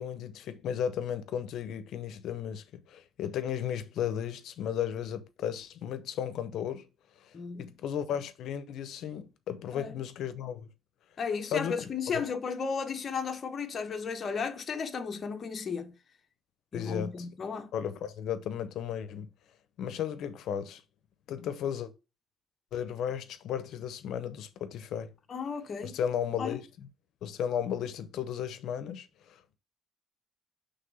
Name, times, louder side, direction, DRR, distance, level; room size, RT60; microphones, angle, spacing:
voice 1, 0.0-6.9 7.2-10.7 11.5-11.8 12.1-12.2 16.7-17.1 17.7-19.3 19.8-20.8 21.3-21.9 22.7-25.1 25.8-26.9 27.2-29.6, left 9 dB, 80° left, 0.7 m, -34 dB
voice 2, 7.3-7.7 9.7-10.0 11.2-15.9 16.7-17.7 25.3-25.9 26.4-26.6, left 5 dB, 40° left, 1.0 m, -34 dB
5.8 x 3.4 x 5.5 m
cardioid pair, 110°, 0 cm